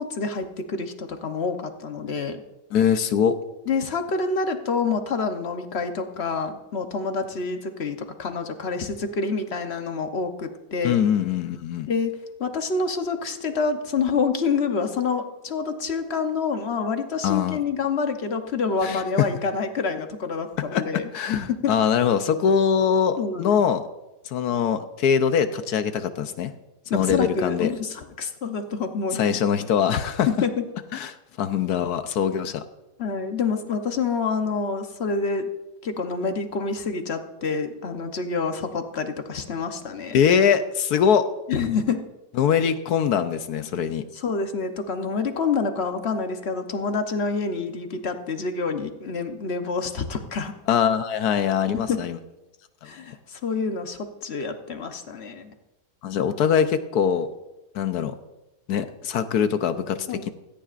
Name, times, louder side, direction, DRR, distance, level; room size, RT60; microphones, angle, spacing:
voice 1, 0.0-2.4 3.7-11.0 11.9-21.1 21.5-21.8 23.2-23.6 26.9-29.3 30.3-30.5 33.0-35.5 35.8-40.2 41.5-42.0 44.1-50.5 51.9-52.0 52.8-55.5 60.1-60.3, left 4 dB, 45° left, 7 dB, 1.0 m, -27 dB
voice 2, 2.7-3.4 10.8-11.9 17.2-17.6 18.8-19.3 20.7-23.9 24.2-26.5 26.9-27.7 29.1-30.3 30.9-32.6 40.1-41.2 42.4-44.0 50.7-52.2 56.0-57.3 57.7-58.1 58.7-60.3, left 7 dB, 70° left, 10 dB, 1.2 m, -22 dB
17.0 x 14.0 x 2.5 m, 1.0 s
omnidirectional pair, 1.7 m